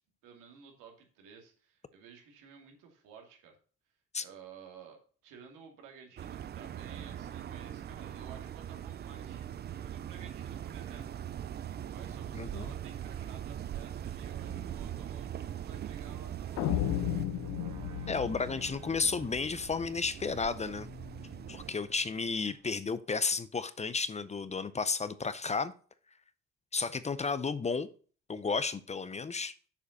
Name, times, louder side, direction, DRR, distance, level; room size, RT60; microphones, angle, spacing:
voice 1, 0.2-3.6 4.2-11.1 11.9-17.0, right 6 dB, 90° right, 3 dB, 2.2 m, -54 dB
sound 1, 6.2-21.7, right 10 dB, 35° right, 0.4 m, -41 dB
voice 2, 12.3-12.7 18.1-20.9 21.5-25.7 26.7-27.9 28.3-29.5, left 4 dB, 20° left, 15 dB, 0.6 m, -33 dB
sound 2, 14.5-22.7, right 1 dB, 70° right, 1.8 m, -49 dB
sound 3, 16.6-19.7, left 15 dB, 90° left, 0.7 m, -34 dB
7.0 x 5.0 x 6.4 m, 0.41 s
cardioid pair, 100°, 31 cm